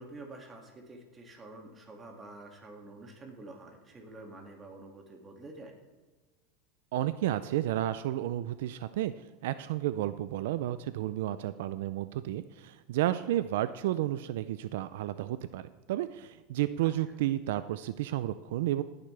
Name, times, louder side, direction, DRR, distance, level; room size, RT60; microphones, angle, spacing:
voice 1, 0.0-5.7 16.8-16.9, right 2 dB, 20° right, 2 dB, 2.1 m, -48 dB
voice 2, 6.9-9.1 9.4-18.8, right 13 dB, 75° right, 13 dB, 0.4 m, -32 dB
17.0 x 9.7 x 3.3 m, 1.3 s
supercardioid pair, 130°, 0 cm